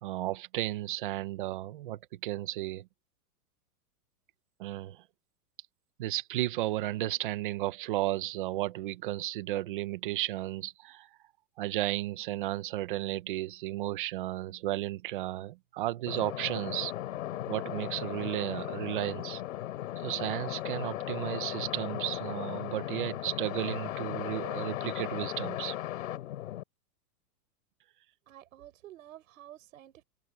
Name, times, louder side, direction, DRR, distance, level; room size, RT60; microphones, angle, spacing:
voice 1, 0.0-2.9 4.6-5.0 6.0-11.1 11.6-16.9 17.5-19.4 20.0-25.8, right 15 dB, 35° right, 1.0 m, -34 dB
sound 1, 16.1-26.6, left 13 dB, 55° left, 3.5 m, -37 dB
voice 2, 28.3-30.0, right 13 dB, 55° right, 6.5 m, -51 dB
supercardioid pair, 180°, 47 cm